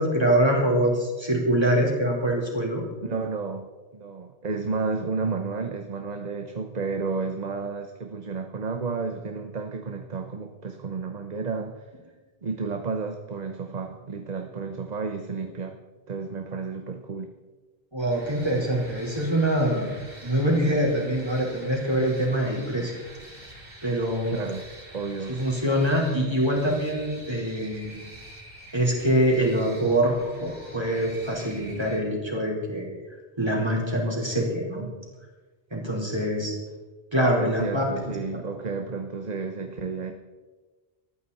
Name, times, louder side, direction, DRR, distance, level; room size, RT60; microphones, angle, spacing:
voice 1, 0.0-2.8 17.9-19.9 20.2-22.9 23.8-24.4 25.3-28.1 28.7-30.1 30.4-32.9 33.4-34.9 35.7-36.5 37.1-37.8, right 1 dB, 25° right, -3 dB, 4.4 m, -24 dB
voice 2, 3.0-3.7 3.9-11.8 12.4-15.8 16.1-17.3 24.3-24.7 24.9-25.4 37.4-40.1, right 4 dB, 45° right, 6 dB, 1.0 m, -32 dB
sound 1, 18.1-32.0, right 1 dB, 65° right, 5.8 m, -46 dB
19.5 x 14.0 x 4.2 m, 1.3 s
omnidirectional pair, 1.1 m